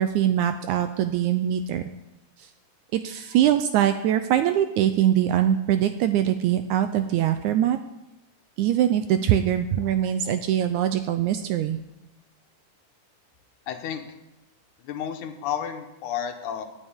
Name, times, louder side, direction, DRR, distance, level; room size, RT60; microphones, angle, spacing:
voice 1, 0.0-1.8 2.4-2.5 2.9-7.8 8.6-11.8, right 11 dB, 80° right, 9 dB, 1.7 m, -22 dB
voice 2, 13.7-14.0 14.9-16.7, left 9 dB, 70° left, 7 dB, 2.2 m, -31 dB
17.5 x 9.8 x 3.6 m, 0.93 s
omnidirectional pair, 3.9 m